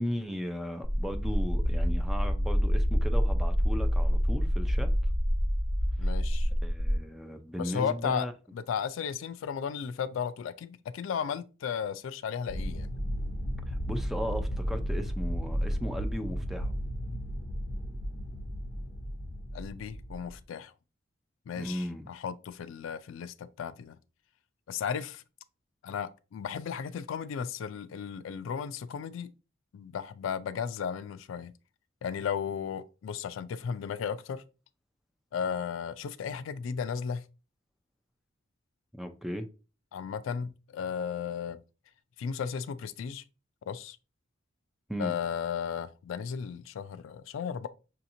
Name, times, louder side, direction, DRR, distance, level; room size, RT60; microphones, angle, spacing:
voice 1, 0.0-4.9 6.0-6.1 6.6-8.3 13.7-16.7 21.5-22.0 38.9-39.5 44.9-45.2, equal, ahead, 0.4 m, -36 dB
sound 1, 0.8-7.0, equal, 40° right, 2.5 m, -27 dB
voice 2, 6.0-6.5 7.6-8.3 8.5-12.9 19.5-20.7 21.5-24.0 24.7-25.2 25.8-29.3 29.7-31.5 32.0-34.4 35.3-37.2 39.9-41.6 42.2-43.2 43.7-44.0 45.0-47.7, left 7 dB, 75° left, 0.3 m, -35 dB
sound 2, 12.5-20.4, equal, 40° left, 1.1 m, -34 dB
5.5 x 2.8 x 2.6 m
head